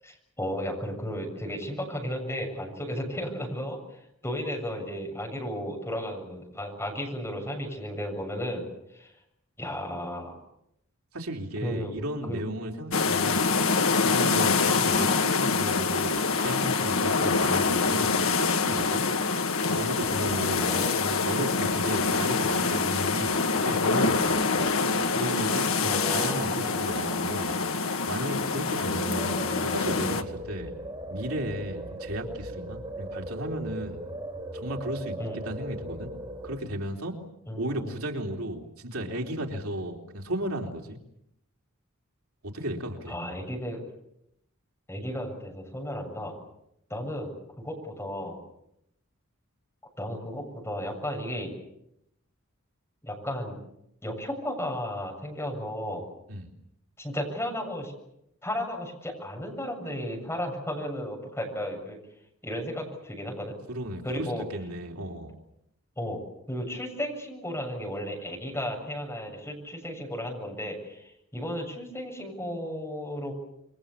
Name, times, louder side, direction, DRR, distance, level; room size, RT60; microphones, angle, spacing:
voice 1, 0.0-8.7 8.9-9.1 9.6-10.3 11.6-11.9 12.3-12.4 20.6-21.2 25.8-26.5 35.2-35.4 37.5-37.9 43.1-43.9 44.9-46.4 46.9-48.4 50.0-51.6 53.0-53.6 54.0-56.0 57.0-57.9 58.4-62.0 62.4-63.5 64.0-64.4 66.0-66.2 66.5-73.3, equal, 10° left, 2 dB, 7.4 m, -34 dB
voice 2, 11.1-13.5 14.0-19.0 19.7-20.8 21.2-24.5 25.1-25.7 26.1-30.7 31.1-34.0 34.5-35.2 35.4-36.1 36.4-37.1 37.6-41.0 42.5-43.4 56.3-56.5 63.7-65.3, right 1 dB, 85° right, 2 dB, 3.6 m, -34 dB
sound 1, 12.9-30.2, left 4 dB, 70° left, 1.7 m, -25 dB
sound 2, 16.8-36.6, right 1 dB, 25° right, 5.0 m, -41 dB
28.0 x 24.0 x 7.2 m, 0.80 s
head